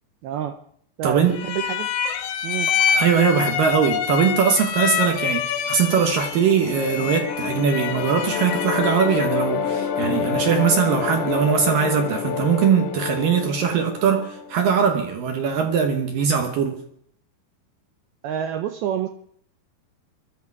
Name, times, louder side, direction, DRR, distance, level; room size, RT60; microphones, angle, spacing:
voice 1, 0.2-0.6 1.0-1.9 2.4-2.7 18.2-19.1, right 10 dB, 80° right, 7 dB, 2.2 m, -27 dB
voice 2, 1.0-1.4 2.9-16.8, right 7 dB, 65° right, 4 dB, 2.4 m, -21 dB
sound 1, 1.3-9.4, left 8 dB, 90° left, 3.5 m, -26 dB
sound 2, 5.8-14.9, left 7 dB, 70° left, 2.0 m, -28 dB
22.0 x 13.5 x 4.8 m, 0.66 s
omnidirectional pair, 5.3 m